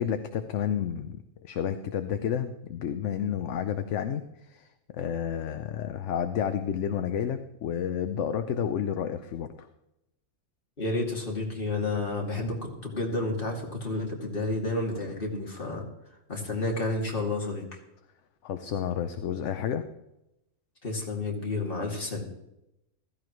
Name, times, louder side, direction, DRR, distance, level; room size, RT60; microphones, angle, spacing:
voice 1, 0.0-4.7 4.9-9.7 18.4-19.9, left 8 dB, 70° left, 9 dB, 1.0 m, -30 dB
voice 2, 10.8-15.8 16.3-17.6 20.8-22.2, left 2 dB, 40° left, -1 dB, 2.7 m, -30 dB
15.5 x 15.0 x 3.2 m, 0.88 s
omnidirectional pair, 1.4 m